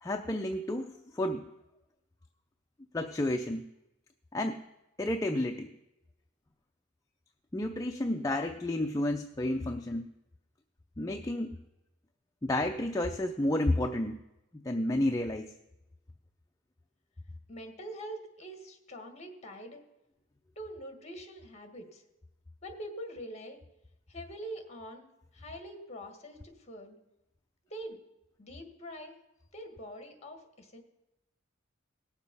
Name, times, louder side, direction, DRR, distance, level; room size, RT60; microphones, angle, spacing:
voice 1, 0.0-1.5 2.9-3.6 4.3-4.6 5.0-5.7 7.5-10.1 11.0-11.5 12.4-14.2 14.6-15.5, left 1 dB, 15° left, 4 dB, 0.5 m, -31 dB
voice 2, 17.5-19.8 20.6-22.0 22.6-23.6 24.1-25.1 25.3-27.0 27.7-28.0 28.4-29.2 29.5-30.8, right 1 dB, 35° left, 5 dB, 1.8 m, -44 dB
17.5 x 7.3 x 5.4 m, 0.93 s
head